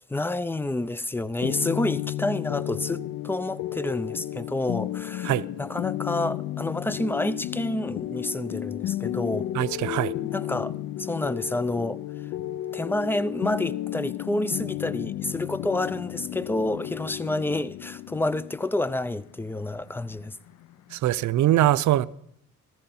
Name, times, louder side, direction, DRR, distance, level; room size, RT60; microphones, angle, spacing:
voice 1, 0.1-9.5 10.3-12.0 12.7-20.4, left 2 dB, 5° left, 0.5 m, -29 dB
sound 1, 1.4-21.0, left 13 dB, 75° left, 0.5 m, -33 dB
voice 2, 9.5-10.1 20.9-22.1, right 13 dB, 70° right, 0.6 m, -22 dB
15.0 x 14.0 x 4.3 m
cardioid pair, 90°, 30 cm